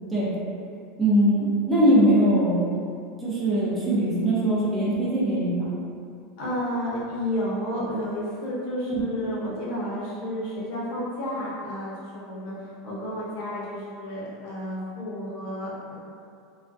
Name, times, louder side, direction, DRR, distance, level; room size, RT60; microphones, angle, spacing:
voice 1, 1.0-2.6 3.2-5.5 8.9-9.0, right 1 dB, 15° right, -8 dB, 0.5 m, -21 dB
voice 2, 6.4-16.0, equal, 55° left, -6 dB, 0.7 m, -31 dB
2.3 x 2.1 x 2.5 m, 2.4 s
supercardioid pair, 160°, 0 cm